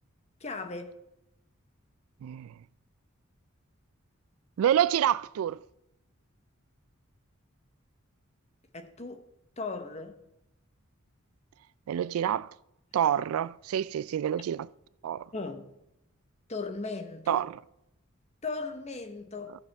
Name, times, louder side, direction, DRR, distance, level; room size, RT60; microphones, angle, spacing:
voice 1, 0.4-1.0 8.7-9.3 9.6-10.2 15.3-15.7 16.5-17.5 18.4-19.5, left 3 dB, 30° left, 0.9 m, -37 dB
voice 2, 2.2-2.5 4.6-5.6 11.9-12.5 12.9-14.7 15.0-15.3 17.3-17.5, right 10 dB, 85° right, 0.3 m, -27 dB
14.0 x 6.8 x 3.4 m
head